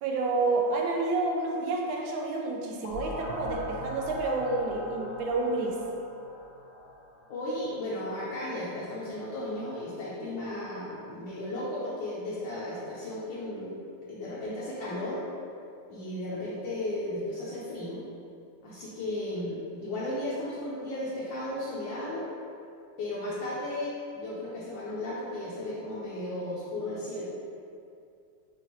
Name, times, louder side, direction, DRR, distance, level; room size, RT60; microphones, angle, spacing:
voice 1, 0.0-5.8, right 3 dB, 80° right, 0 dB, 1.3 m, -29 dB
sound 1, 2.8-7.5, equal, 90° left, 1.6 m, -40 dB
voice 2, 7.3-13.7 14.1-15.2 15.9-18.0 18.6-22.3 23.0-27.2, left 1 dB, 70° left, -8 dB, 1.4 m, -35 dB
7.0 x 2.5 x 3.0 m, 2.5 s
omnidirectional pair, 2.2 m